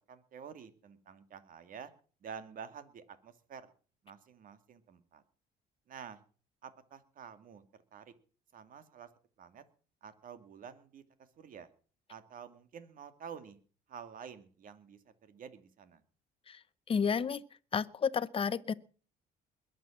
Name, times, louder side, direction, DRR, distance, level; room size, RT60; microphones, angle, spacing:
voice 1, 0.1-1.9 2.2-3.7 4.0-5.2 5.9-6.2 6.6-7.6 7.9-8.1 8.5-9.1 9.4-9.6 10.0-11.7 12.1-13.6 13.9-16.0, right 7 dB, 55° right, 2.4 m, -49 dB
voice 2, 16.9-17.4 17.7-18.7, left 6 dB, 35° left, 0.9 m, -31 dB
21.5 x 7.8 x 7.3 m
cardioid pair, 110°, 17 cm